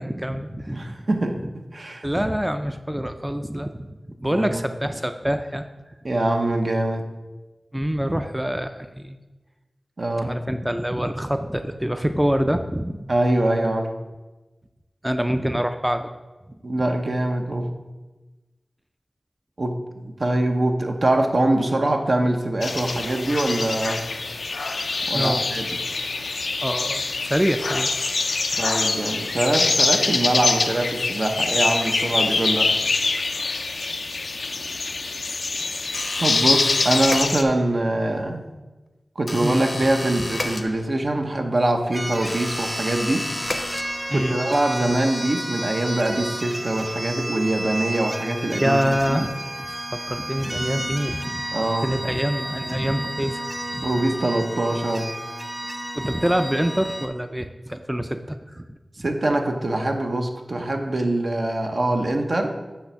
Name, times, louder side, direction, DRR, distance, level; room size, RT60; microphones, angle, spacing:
voice 1, 0.0-0.8 2.0-3.9 4.2-5.6 7.7-9.2 10.2-13.1 15.0-16.1 25.1-25.4 26.6-27.9 39.4-39.6 44.1-44.4 48.6-49.3 49.7-53.4 53.7-53.9 55.9-58.8, equal, 10° right, 8 dB, 0.4 m, -25 dB
voice 2, 0.7-2.3 4.3-4.6 6.0-7.1 10.0-10.3 13.1-13.9 16.6-17.7 19.6-24.0 25.1-25.8 28.6-32.8 36.2-38.5 39.2-43.3 44.1-49.3 51.5-51.9 53.8-55.1 59.0-62.6, right 1 dB, 65° right, 4 dB, 0.8 m, -23 dB
sound 1, 22.6-37.4, left 3 dB, 85° left, 0.4 m, -24 dB
sound 2, 35.9-37.8 39.3-41.2 42.2-44.3, left 1 dB, 40° left, 0.6 m, -32 dB
sound 3, 41.9-57.1, right 1 dB, 25° right, 0.9 m, -32 dB
8.6 x 3.3 x 5.6 m, 1.2 s
cardioid pair, 40°, 0 cm